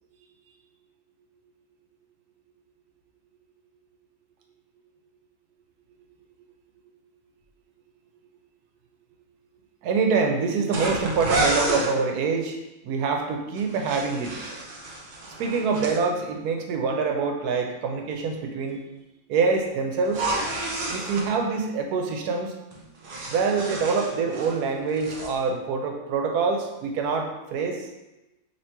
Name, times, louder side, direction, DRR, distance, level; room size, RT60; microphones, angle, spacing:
voice 1, 9.8-12.6 12.8-14.4 15.4-18.8 19.3-20.2 20.9-22.5 23.3-27.9, right 4 dB, 85° right, 3 dB, 1.1 m, -25 dB
sound 1, 10.7-11.9 13.6-16.0 20.0-21.3 22.7-24.6 24.9-25.3, right 2 dB, 55° right, 0.6 m, -30 dB
2.9 x 2.8 x 4.4 m, 0.99 s
omnidirectional pair, 1.6 m